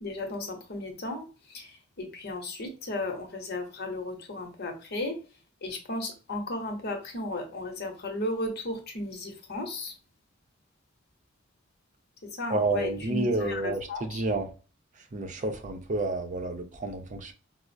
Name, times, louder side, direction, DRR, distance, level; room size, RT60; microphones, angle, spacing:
voice 1, 0.0-5.2 5.6-9.9 12.3-14.2, left 2 dB, 55° left, 0.9 m, -35 dB
voice 2, 12.5-14.5 15.1-17.3, right 2 dB, 40° right, 0.6 m, -30 dB
4.8 x 2.0 x 2.5 m
head